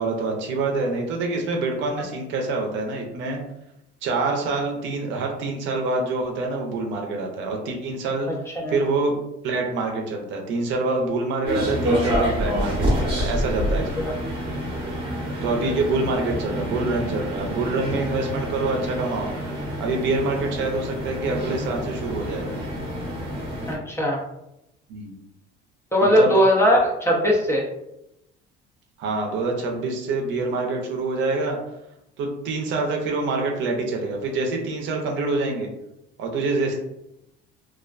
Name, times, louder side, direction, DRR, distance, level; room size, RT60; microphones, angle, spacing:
voice 1, 0.0-3.4 4.0-8.3 8.7-9.1 9.4-14.0 15.4-19.3 19.8-22.6 24.9-25.2 26.0-26.3 29.0-31.6 32.2-35.7 36.2-36.7, right 3 dB, 65° right, 1 dB, 0.6 m, -26 dB
sound 1, 11.4-23.8, equal, 25° right, 0.8 m, -27 dB
voice 2, 13.7-14.1 23.7-24.2 25.9-27.6, equal, 10° left, -3 dB, 0.5 m, -19 dB
2.4 x 2.2 x 2.4 m, 0.86 s
cardioid pair, 125°, 21 cm